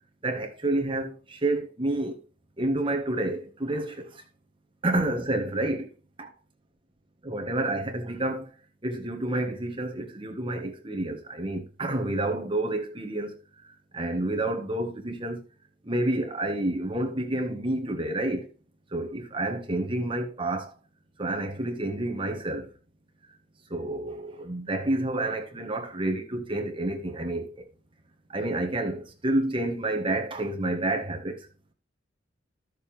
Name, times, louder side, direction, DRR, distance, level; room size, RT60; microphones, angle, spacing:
voice 1, 0.2-2.2 2.6-4.2 4.8-5.9 6.2-6.3 7.2-8.5 8.8-13.4 13.6-15.4 15.8-18.5 18.9-20.7 21.2-22.7 23.2-23.3 23.7-27.7 28.3-31.5, right 1 dB, 30° right, 1.5 m, -29 dB
12.5 x 6.7 x 3.4 m
head